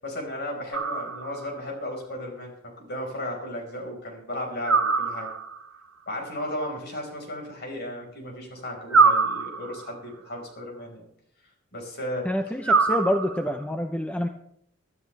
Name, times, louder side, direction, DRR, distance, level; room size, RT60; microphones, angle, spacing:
voice 1, 0.0-5.3 6.1-11.0 11.7-12.3, left 1 dB, 50° left, 1 dB, 4.9 m, -35 dB
sound 1, 0.7-1.6 4.7-5.7 8.9-10.0 12.6-13.6, right 4 dB, 90° right, 1.3 m, -23 dB
voice 2, 12.2-14.3, left 1 dB, 5° left, 6 dB, 0.7 m, -27 dB
23.0 x 12.5 x 3.4 m, 0.69 s
head